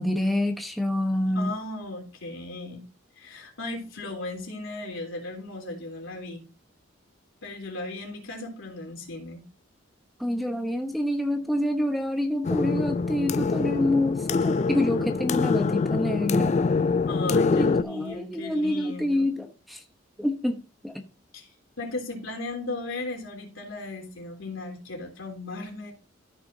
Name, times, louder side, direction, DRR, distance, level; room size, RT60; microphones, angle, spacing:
voice 1, 0.0-1.5 10.2-16.6 17.5-19.8 20.2-20.6 20.8-21.0, left 1 dB, ahead, 0.9 m, -27 dB
voice 2, 1.3-2.8 3.2-6.4 7.4-9.4 17.1-19.3 21.3-21.5 21.8-25.9, left 2 dB, 75° left, 3.4 m, -36 dB
sound 1, 12.4-17.8, left 4 dB, 35° left, 0.3 m, -25 dB
13.5 x 6.0 x 2.7 m
head